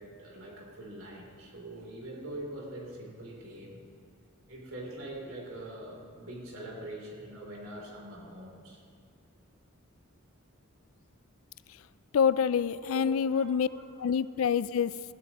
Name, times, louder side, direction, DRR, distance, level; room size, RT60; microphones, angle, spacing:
voice 1, 0.0-3.8 4.5-8.8 12.8-14.1, right 1 dB, 75° right, -2 dB, 3.1 m, -43 dB
voice 2, 12.1-13.7 14.0-15.1, left 7 dB, 75° left, 17 dB, 0.3 m, -27 dB
17.0 x 15.5 x 3.0 m, 2.4 s
head